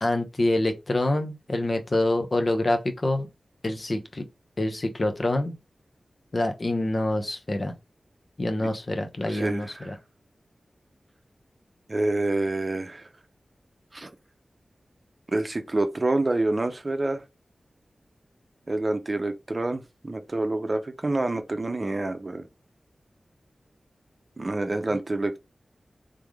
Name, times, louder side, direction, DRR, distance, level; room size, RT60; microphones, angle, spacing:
voice 1, 0.0-3.3 3.6-4.2 4.6-5.5 6.3-7.8 8.4-10.0 24.9-25.0, left 1 dB, 40° left, 0.8 m, -26 dB
voice 2, 9.3-9.9 11.9-13.0 13.9-14.1 15.3-17.2 18.7-22.5 24.4-25.4, right 2 dB, 35° right, 0.7 m, -27 dB
3.7 x 3.4 x 3.5 m
wide cardioid pair, 95°, 0 cm